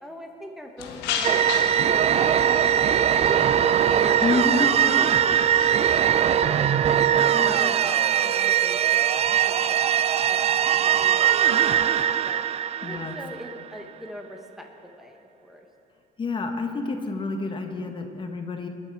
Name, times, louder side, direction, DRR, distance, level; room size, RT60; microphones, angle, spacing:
voice 1, 0.0-1.4 1.8-5.3 5.7-6.6 6.9-9.1 9.4-10.4 10.7-11.2 11.5-12.4 12.8-15.6, equal, ahead, 2 dB, 1.2 m, -40 dB
sound 1, 0.8-6.1, left 7 dB, 90° left, 1.5 m, -35 dB
sound 2, 1.2-13.7, right 10 dB, 40° right, 0.5 m, -21 dB
voice 2, 4.2-4.7 7.3-7.6 12.8-13.1 16.2-18.7, left 3 dB, 30° left, 4 dB, 1.5 m, -28 dB
22.0 x 11.0 x 4.7 m, 2.6 s
cardioid pair, 110°, 17 cm